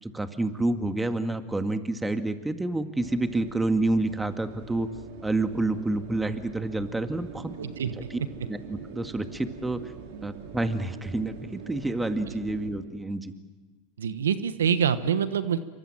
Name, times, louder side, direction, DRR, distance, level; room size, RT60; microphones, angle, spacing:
voice 1, 0.0-4.9 5.2-7.5 8.1-8.2 8.5-9.8 10.2-13.3, right 2 dB, 10° right, 8 dB, 2.0 m, -28 dB
sound 1, 3.0-12.7, right 7 dB, 70° right, 4.4 m, -44 dB
voice 2, 7.6-7.9 14.0-15.6, right 8 dB, 85° right, 14 dB, 1.2 m, -25 dB
27.5 x 24.0 x 7.6 m, 1.3 s
hypercardioid pair, 95°, 0 cm